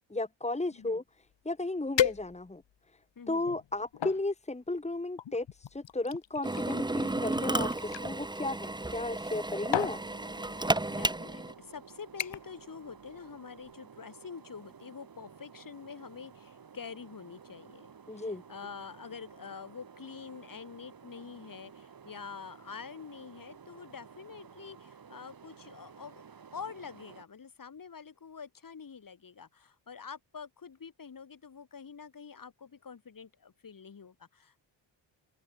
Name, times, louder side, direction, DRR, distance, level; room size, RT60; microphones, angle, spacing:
voice 1, 0.1-1.0 1.4-2.6 3.3-10.0 18.1-18.4, left 2 dB, 15° left, 2.7 m, -34 dB
sound 1, 1.3-1.4 2.0-2.7 3.4-4.2 5.2-8.1 9.2-9.4 9.7-10.0 10.9-11.1 11.5-11.8 12.2-12.6 12.9-13.3 13.6-13.7, left 10 dB, 65° left, 2.5 m, -34 dB
voice 2, 3.2-3.5 11.0-26.2 26.5-34.6, left 6 dB, 45° left, 7.0 m, -46 dB
Drill, 6.4-11.5, right 2 dB, 10° right, 1.5 m, -33 dB
sound 2, 9.4-27.3, right 6 dB, 50° right, 7.5 m, -53 dB
open air
wide cardioid pair, 120°, 46 cm